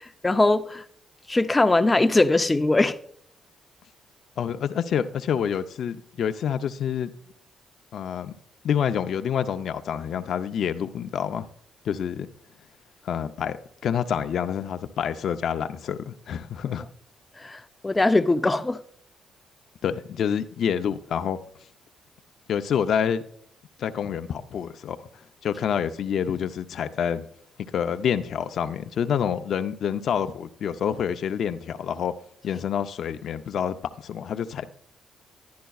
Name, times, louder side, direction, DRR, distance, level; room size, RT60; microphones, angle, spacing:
voice 1, 0.2-0.8 1.3-3.0 17.4-18.8, left 2 dB, 15° left, 0.5 m, -21 dB
voice 2, 4.4-7.1 7.9-8.3 8.6-11.5 11.8-12.3 13.0-13.6 13.8-16.9 19.8-21.4 22.5-23.2 23.8-25.1 25.4-27.3 27.7-32.1 32.4-34.7, left 8 dB, 65° left, 0.5 m, -27 dB
11.0 x 10.5 x 2.3 m
cardioid pair, 90°, 0 cm